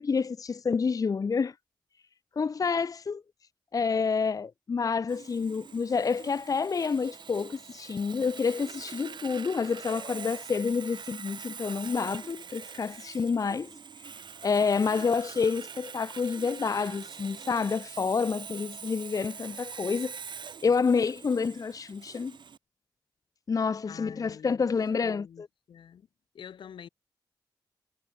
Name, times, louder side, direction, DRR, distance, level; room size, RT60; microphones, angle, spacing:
voice 1, 0.0-1.5 2.4-3.2 3.7-14.2 14.4-20.1 20.6-22.4 23.5-25.5, left 5 dB, 45° left, 0.5 m, -28 dB
Sawing, 5.1-22.6, right 6 dB, 70° right, 3.1 m, -44 dB
voice 2, 23.6-24.7 25.0-26.1 26.3-26.9, left 8 dB, 85° left, 4.1 m, -47 dB
cardioid pair, 55°, 8 cm